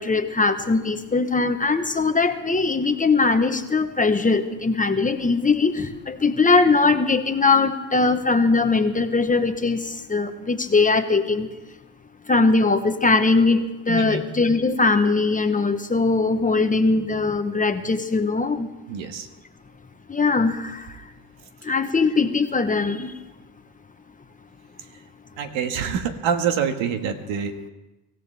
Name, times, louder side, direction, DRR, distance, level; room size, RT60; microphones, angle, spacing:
voice 1, 0.0-9.8 10.1-11.5 12.3-18.7 20.1-20.8 21.7-23.1, left 3 dB, 20° left, 8 dB, 0.9 m, -20 dB
voice 2, 13.9-14.2 18.9-19.3 25.4-27.7, right 7 dB, 80° right, 6 dB, 1.6 m, -26 dB
24.5 x 15.0 x 3.4 m, 1.0 s
cardioid pair, 115°, 45 cm